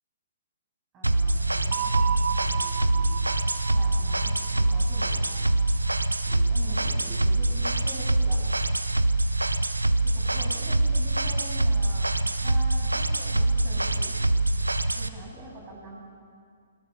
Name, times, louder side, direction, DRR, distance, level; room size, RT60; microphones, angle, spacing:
voice 1, 0.9-3.2 3.7-5.6 6.3-8.4 10.0-14.1 14.9-16.0, right 1 dB, 25° right, -2 dB, 7.2 m, -44 dB
sound 1, 1.0-15.1, right 2 dB, 90° right, 1.0 m, -24 dB
sound 2, 1.7-6.3, right 10 dB, 45° right, 1.2 m, -34 dB
28.0 x 20.0 x 5.6 m, 2.1 s
figure-of-eight pair, 125°, 0 cm